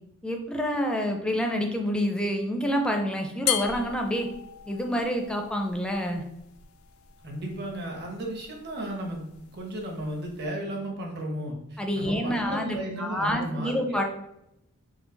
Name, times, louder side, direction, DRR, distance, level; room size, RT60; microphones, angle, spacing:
voice 1, 0.2-4.3 4.7-6.2 11.8-14.0, equal, 5° left, 2 dB, 0.5 m, -28 dB
sound 1, 3.5-10.5, left 11 dB, 80° left, 0.4 m, -37 dB
voice 2, 7.2-14.0, right 1 dB, 50° right, 1 dB, 1.0 m, -34 dB
4.7 x 2.3 x 3.8 m, 0.83 s
head